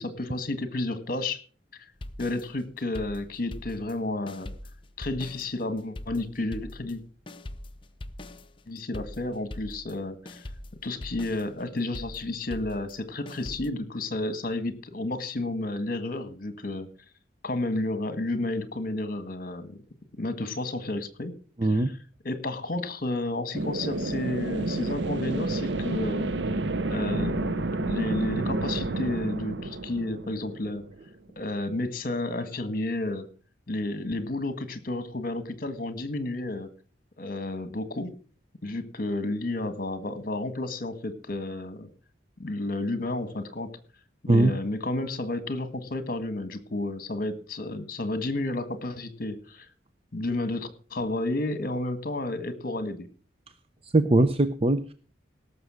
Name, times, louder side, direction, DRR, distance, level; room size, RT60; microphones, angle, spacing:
voice 1, 0.0-1.4 2.2-4.5 5.0-7.0 8.7-10.5 10.8-16.9 17.4-19.8 20.2-21.3 21.7-21.8 22.2-26.3 26.9-30.8 31.3-33.3 33.7-36.7 37.2-38.1 38.6-41.9 42.4-43.7 44.2-49.7 50.1-53.1, left 2 dB, 50° left, 12 dB, 1.7 m, -31 dB
sound 1, 2.0-4.0 4.3-10.0 10.3-13.7, left 1 dB, 30° left, 0.8 m, -42 dB
voice 2, 21.6-21.9 44.3-44.5 53.8-54.9, right 2 dB, 30° right, 11 dB, 0.6 m, -21 dB
sound 2, 23.5-31.1, right 2 dB, 70° right, 0.7 m, -30 dB
17.5 x 7.0 x 6.3 m, 0.40 s
head